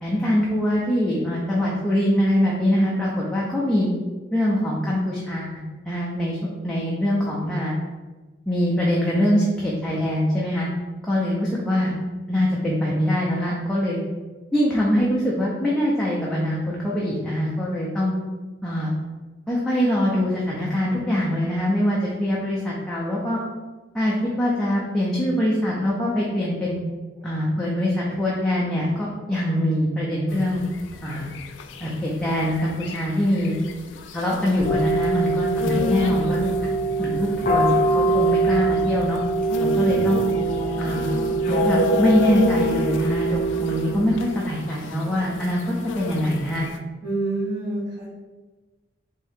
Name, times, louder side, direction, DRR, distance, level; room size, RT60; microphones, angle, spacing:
voice 1, 0.0-3.9 4.3-6.4 6.6-7.7 8.5-10.7 11.1-11.9 12.3-14.0 14.5-18.1 18.6-18.9 19.5-23.4 23.9-26.8 27.2-30.6 31.0-31.3 31.8-33.6 34.1-36.7 37.0-39.2 39.6-40.2 40.8-41.1 41.5-45.6 46.0-46.7, equal, 5° left, -6 dB, 0.5 m, -23 dB
sound 1, 30.3-46.8, left 5 dB, 80° left, 0.3 m, -33 dB
sound 2, 34.6-44.3, right 3 dB, 45° left, 0.7 m, -23 dB
voice 2, 47.0-48.1, right 2 dB, 30° right, -12 dB, 1.3 m, -28 dB
3.6 x 2.7 x 3.4 m, 1.2 s
head